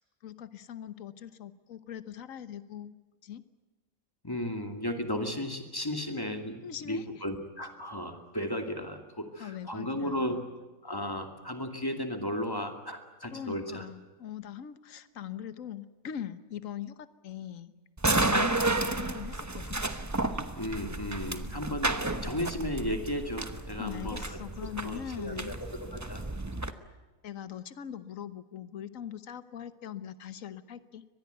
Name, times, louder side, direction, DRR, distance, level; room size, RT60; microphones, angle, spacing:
voice 1, 0.2-3.0 3.2-3.4 6.6-7.0 9.4-10.5 13.3-17.7 18.3-19.8 23.8-25.6 26.7-26.8 27.2-31.1, left 9 dB, 75° left, 13 dB, 1.4 m, -41 dB
voice 2, 4.2-10.4 10.8-13.9 20.6-21.9 22.2-24.4 24.8-25.5 25.9-26.2, left 1 dB, 15° left, 5 dB, 2.5 m, -34 dB
sound 1, 18.0-26.7, right 2 dB, 15° right, 1.0 m, -32 dB
24.0 x 20.0 x 9.3 m, 1.2 s
omnidirectional pair, 1.4 m